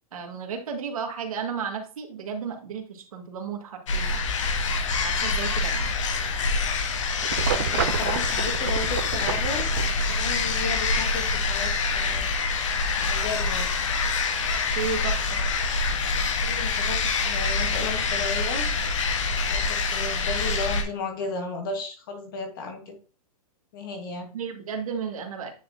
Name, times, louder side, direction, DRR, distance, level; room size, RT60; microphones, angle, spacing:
voice 1, 0.1-4.1 5.0-5.9 14.7-15.4 24.3-25.5, right 6 dB, 65° right, 4 dB, 1.7 m, -33 dB
sound 1, 3.9-20.8, left 4 dB, 50° left, 1.1 m, -26 dB
sound 2, 7.2-10.0, right 9 dB, 35° right, 0.4 m, -30 dB
voice 2, 7.4-12.3 13.0-13.7 16.4-18.7 19.5-23.0 23.7-24.3, left 3 dB, 35° left, 4 dB, 1.3 m, -34 dB
9.3 x 4.1 x 2.6 m, 0.37 s
hypercardioid pair, 175°, 20 cm